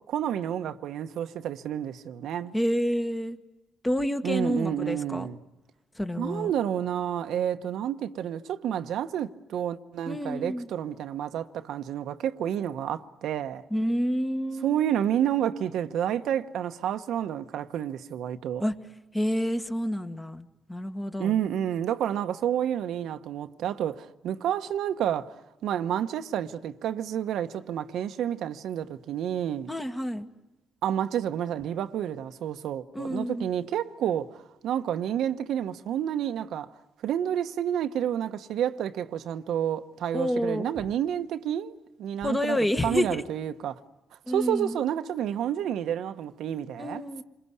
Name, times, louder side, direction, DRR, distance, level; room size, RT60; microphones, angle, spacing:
voice 1, 0.1-2.5 4.2-5.4 6.2-13.6 14.6-18.6 21.2-25.4 25.6-29.7 30.8-36.7 37.0-41.7 42.0-42.6 42.8-43.8 44.3-47.0, right 10 dB, 80° right, 1.0 m, -30 dB
voice 2, 2.5-3.4 3.8-5.3 5.9-6.5 10.0-10.7 13.7-14.8 18.6-18.7 19.1-21.4 29.7-30.3 32.9-33.5 40.1-40.7 42.2-43.2 44.3-44.8 46.8-47.2, equal, 15° left, 1.6 m, -29 dB
28.0 x 21.5 x 9.6 m
cardioid pair, 90°, 0 cm